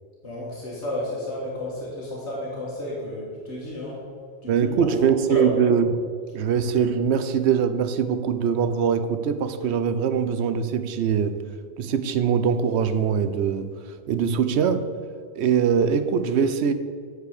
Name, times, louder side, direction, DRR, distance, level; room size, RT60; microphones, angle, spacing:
voice 1, 0.2-4.0 4.4-4.7 5.3-5.5, left 1 dB, 90° left, -5 dB, 2.0 m, -32 dB
voice 2, 4.5-6.0 6.3-11.4 11.8-13.7 14.1-14.8 15.4-16.7, right 7 dB, 80° right, 10 dB, 0.9 m, -22 dB
8.2 x 4.8 x 6.6 m, 2.1 s
omnidirectional pair, 1.1 m